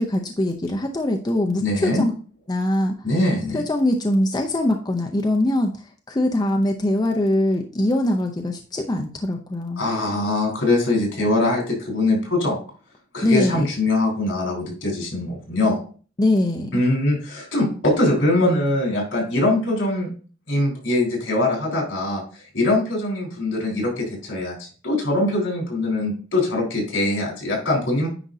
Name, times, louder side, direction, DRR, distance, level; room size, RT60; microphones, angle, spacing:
voice 1, 0.0-2.1 2.5-2.9 3.5-5.8 6.1-9.8 13.2-13.7 16.2-16.8, left 1 dB, 20° left, 2 dB, 0.6 m, -22 dB
voice 2, 1.6-2.0 3.0-3.6 9.8-12.6 13.1-15.8 16.7-20.1 20.5-22.2 22.5-28.1, left 2 dB, 75° left, -1 dB, 4.0 m, -22 dB
9.9 x 5.2 x 2.7 m, 0.39 s
head